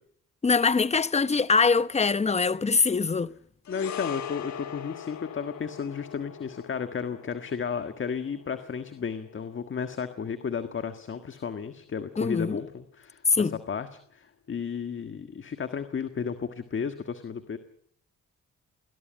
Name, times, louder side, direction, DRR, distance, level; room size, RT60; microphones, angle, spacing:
voice 1, 0.4-3.3 12.2-12.6 13.3-13.6, left 4 dB, 20° left, 0.9 m, -23 dB
sound 1, 3.6-12.1 12.4-12.6, left 8 dB, 65° left, 1.7 m, -43 dB
voice 2, 3.7-17.6, left 6 dB, 40° left, 1.6 m, -33 dB
21.0 x 17.5 x 9.0 m
cardioid pair, 90°, 30 cm